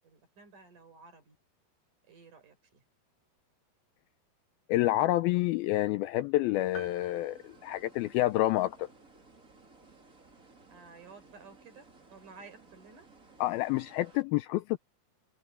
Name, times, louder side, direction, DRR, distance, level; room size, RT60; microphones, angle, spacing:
voice 1, 0.0-1.4 2.1-2.8 10.7-13.1, right 4 dB, 50° right, 6.3 m, -54 dB
voice 2, 4.7-8.9 13.4-14.8, left 16 dB, 80° left, 2.3 m, -28 dB
sound 1, 6.5-14.2, right 3 dB, 20° right, 2.9 m, -58 dB
sound 2, 6.7-8.5, left 1 dB, 50° left, 5.5 m, -49 dB
omnidirectional pair, 4.7 m